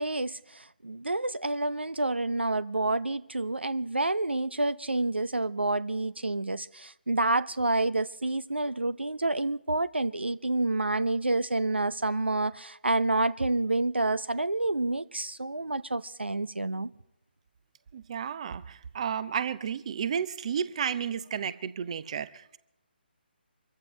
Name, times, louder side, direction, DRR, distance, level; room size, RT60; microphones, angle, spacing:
voice 1, 0.0-16.9, right 2 dB, 85° right, 0.5 m, -28 dB
voice 2, 17.9-22.6, right 7 dB, 40° right, 0.6 m, -32 dB
24.5 x 15.0 x 3.1 m
figure-of-eight pair, 145°, 6 cm